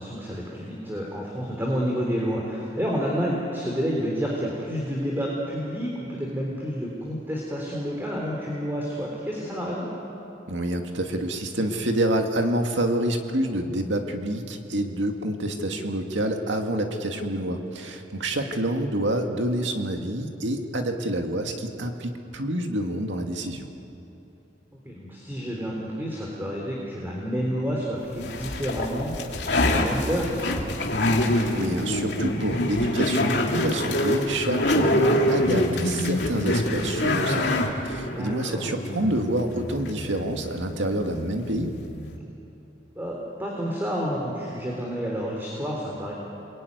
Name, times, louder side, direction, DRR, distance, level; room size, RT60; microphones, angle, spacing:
voice 1, 0.0-9.9 24.9-30.6 35.0-35.2 38.1-38.7 43.0-46.1, equal, 10° right, -3 dB, 3.4 m, -29 dB
voice 2, 10.5-23.7 31.5-41.7, right 1 dB, 80° right, 4 dB, 2.2 m, -27 dB
sound 1, 28.2-42.2, left 1 dB, 65° left, 2.6 m, -26 dB
28.5 x 21.5 x 9.5 m, 3.0 s
head